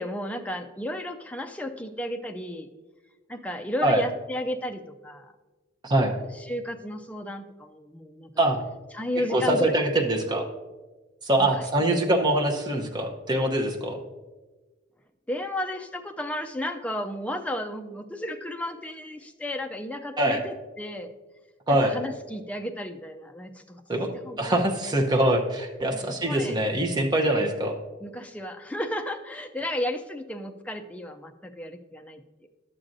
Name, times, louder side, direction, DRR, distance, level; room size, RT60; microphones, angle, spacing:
voice 1, 0.0-2.7 3.3-5.3 6.1-8.5 8.9-9.7 11.4-11.9 15.3-21.1 21.7-23.8 24.2-24.8 25.9-26.6 27.4-27.5 28.0-32.5, left 1 dB, 5° left, 6 dB, 0.4 m, -33 dB
voice 2, 5.8-6.1 8.4-8.6 9.3-10.5 11.2-14.0 20.2-20.4 21.7-21.9 23.9-24.1 24.4-27.7, right 1 dB, 20° right, 1 dB, 0.8 m, -23 dB
11.5 x 7.4 x 2.6 m, 1.3 s
head